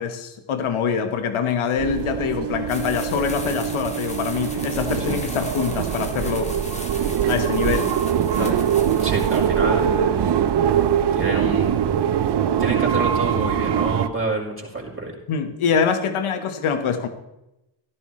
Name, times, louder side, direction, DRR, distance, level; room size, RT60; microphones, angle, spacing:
voice 1, 0.0-6.5 7.3-7.9 8.4-8.6 15.3-17.1, left 6 dB, 75° left, 7 dB, 1.6 m, -24 dB
sound 1, 1.8-14.1, right 9 dB, 55° right, 0.8 m, -22 dB
sound 2, 2.7-9.6, left 1 dB, 15° left, 2.1 m, -38 dB
voice 2, 9.0-10.4 11.1-11.8 12.6-15.2, right 2 dB, 25° right, -1 dB, 4.4 m, -27 dB
15.0 x 12.0 x 3.3 m, 0.92 s
cardioid pair, 65°, 50 cm